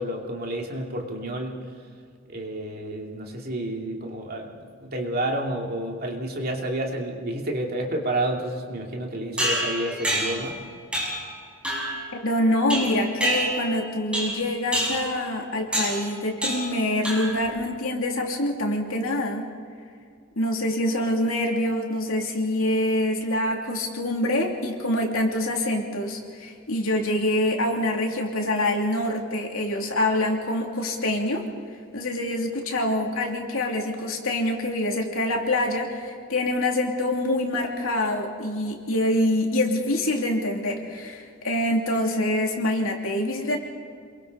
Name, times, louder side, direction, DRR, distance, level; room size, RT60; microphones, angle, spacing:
voice 1, 0.0-1.6 2.3-4.5 4.8-10.6, right 1 dB, 45° right, 0 dB, 2.6 m, -30 dB
sound 1, 9.4-10.5 10.9-11.3 11.6-12.0 12.7-13.8 14.1-14.4 14.7-15.1 15.7-16.0 16.4-16.8 17.0-17.5, right 1 dB, 5° right, 6.8 m, -27 dB
voice 2, 12.2-19.4 20.4-31.4 31.9-43.6, left 1 dB, 75° left, 1 dB, 2.9 m, -25 dB
27.5 x 22.5 x 4.1 m, 2.2 s
head